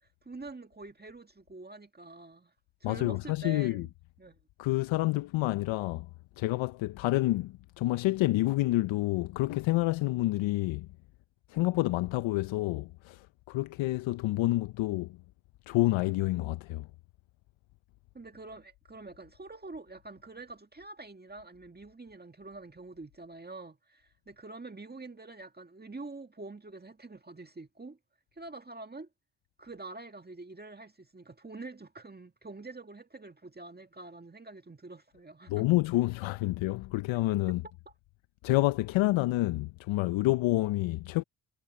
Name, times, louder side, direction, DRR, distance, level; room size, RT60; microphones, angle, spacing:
voice 1, 0.0-2.5 2.8-3.9 4.2-4.4 18.1-28.0 28.3-29.1 29.6-35.7, right 3 dB, 20° right, 2.0 m, -46 dB
voice 2, 2.8-3.9 4.6-6.1 6.4-10.9 11.5-15.2 15.7-16.9 35.5-37.6 38.4-41.2, left 18 dB, 75° left, 0.8 m, -28 dB
hypercardioid pair, 50°, 47 cm